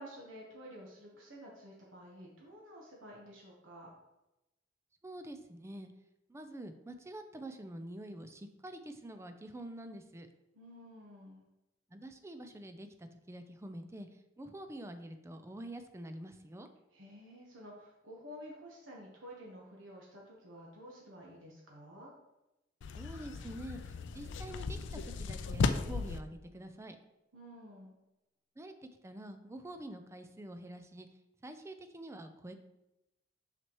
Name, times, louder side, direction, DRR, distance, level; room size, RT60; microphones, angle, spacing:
voice 1, 0.0-3.9 10.5-11.4 16.9-22.1 27.3-27.9, equal, 90° right, -3 dB, 1.2 m, -51 dB
voice 2, 5.0-5.9 6.3-10.3 11.9-14.1 14.4-16.7 23.0-23.8 24.1-27.0 28.6-28.7 29.0-31.1 31.4-32.5, right 1 dB, 15° right, 8 dB, 0.4 m, -46 dB
sound 1, 22.8-26.2, left 4 dB, 65° left, 0.4 m, -36 dB
6.0 x 5.8 x 3.0 m, 0.93 s
head